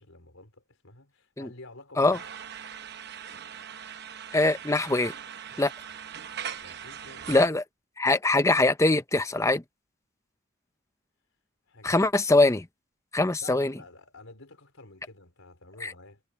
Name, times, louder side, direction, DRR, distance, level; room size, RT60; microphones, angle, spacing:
voice 1, 0.0-2.3 5.9-6.3 6.6-7.4 11.7-12.0 13.4-16.2, left 2 dB, 90° left, 4.3 m, -50 dB
sound 1, 2.1-7.5, right 8 dB, 50° right, 0.9 m, -40 dB
voice 2, 4.3-5.1 5.6-5.7 7.3-7.6 8.0-9.6 11.8-12.6 13.1-13.7 15.8-15.9, left 2 dB, 15° left, 0.7 m, -22 dB
head